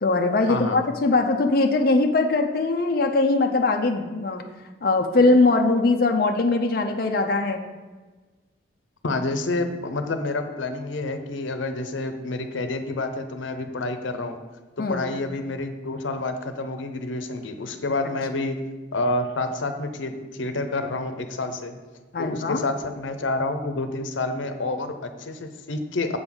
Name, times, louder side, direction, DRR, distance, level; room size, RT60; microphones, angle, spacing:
voice 1, 0.0-4.4 4.8-7.6 14.8-15.1 22.1-22.6, left 3 dB, 50° left, 4 dB, 0.5 m, -21 dB
voice 2, 9.0-14.4 14.8-18.6 18.9-21.7 22.2-26.2, left 2 dB, 85° left, 8 dB, 0.7 m, -28 dB
7.7 x 3.9 x 6.0 m, 1.3 s
head